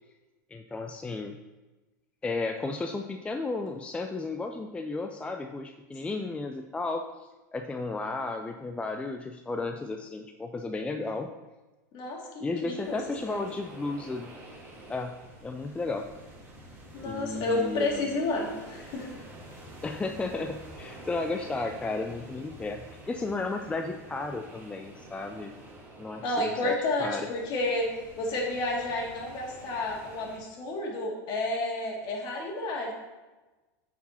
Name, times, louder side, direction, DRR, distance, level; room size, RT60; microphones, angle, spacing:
voice 1, 0.5-1.4 2.2-7.0 7.5-11.3 12.4-14.3 14.9-15.2 15.4-16.1 17.0-18.1 19.8-25.5 26.0-27.3, left 3 dB, 10° left, 4 dB, 0.4 m, -33 dB
voice 2, 11.9-13.0 13.3-13.4 16.9-19.1 26.2-32.9, left 2 dB, 45° left, -1 dB, 2.3 m, -31 dB
sound 1, 12.7-30.4, right 1 dB, 20° right, 2.5 m, -48 dB
9.1 x 4.9 x 4.3 m, 1.2 s
hypercardioid pair, 115°, 10 cm